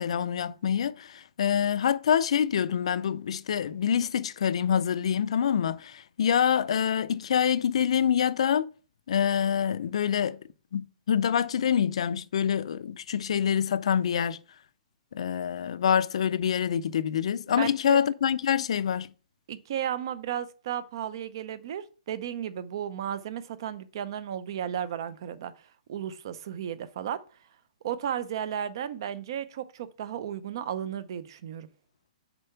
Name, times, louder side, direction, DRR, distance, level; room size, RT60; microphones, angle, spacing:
voice 1, 0.0-8.7 9.1-10.4 10.7-14.4 15.1-19.1, left 8 dB, 50° left, 0.5 m, -26 dB
voice 2, 17.5-18.0 19.5-27.2 27.8-31.7, right 9 dB, 35° right, 0.6 m, -34 dB
6.8 x 4.6 x 5.7 m
hypercardioid pair, 175°, 4 cm